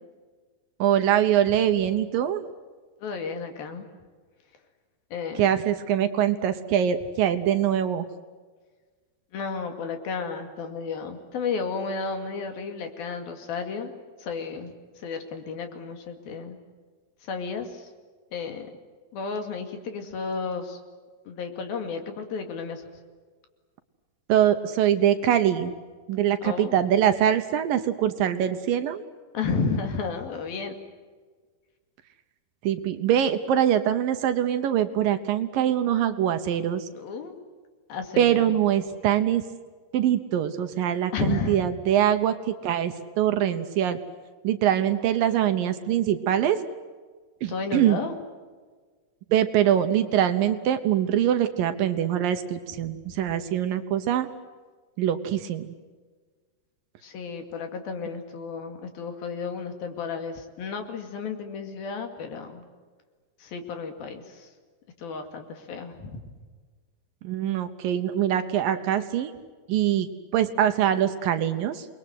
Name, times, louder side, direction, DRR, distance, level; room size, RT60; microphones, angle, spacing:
voice 1, 0.8-2.4 5.4-8.1 24.3-25.7 26.1-29.0 32.6-36.9 38.2-39.4 39.9-44.0 44.4-46.6 47.4-48.0 49.3-54.3 55.0-55.7 67.2-69.3 69.7-71.9, right 10 dB, 70° right, 9 dB, 2.5 m, -23 dB
voice 2, 3.0-3.9 5.1-5.5 9.3-13.9 14.2-14.7 15.0-16.6 17.2-17.9 18.3-18.7 19.1-20.8 21.3-22.8 26.4-26.8 29.3-30.8 36.9-37.3 37.9-38.5 41.1-41.6 47.5-48.2 57.0-62.7 63.4-64.5 65.0-66.2, left 5 dB, 70° left, 6 dB, 4.1 m, -32 dB
28.5 x 21.5 x 8.0 m, 1.5 s
omnidirectional pair, 4.6 m